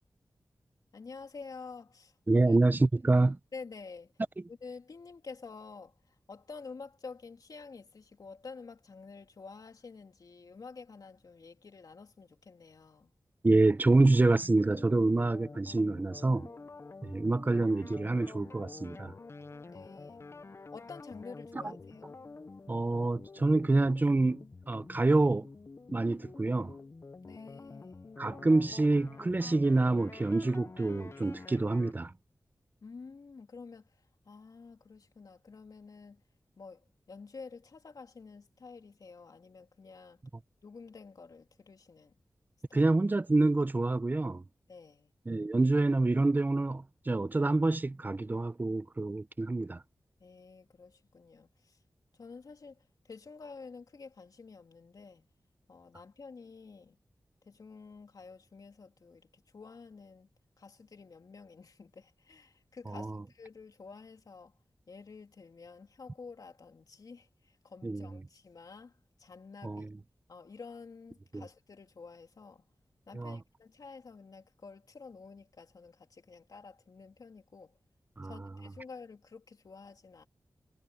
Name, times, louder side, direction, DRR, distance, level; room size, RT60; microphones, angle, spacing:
voice 1, 0.9-2.6 3.5-4.1 4.5-13.1 19.7-20.2 20.7-22.2 27.2-28.2 32.8-36.2 36.6-40.2 40.6-42.1 42.7-42.8 44.7-45.1 50.2-51.8 52.1-55.3 55.7-57.0 57.4-60.3 60.6-64.6 64.9-69.9 70.3-72.6 73.1-77.8 78.2-80.2, left 4 dB, 70° left, 3.3 m, -50 dB
voice 2, 2.3-3.4 13.4-16.5 17.0-19.1 22.7-25.5 25.9-26.8 28.2-32.1 42.7-44.4 45.3-49.8 62.9-63.2 67.8-68.1 69.6-69.9 71.3-71.4 73.1-73.4 78.2-78.3, right 2 dB, 25° right, 0.7 m, -27 dB
sound 1, 13.7-31.9, left 3 dB, 40° left, 0.8 m, -49 dB
wide cardioid pair, 95°, 7 cm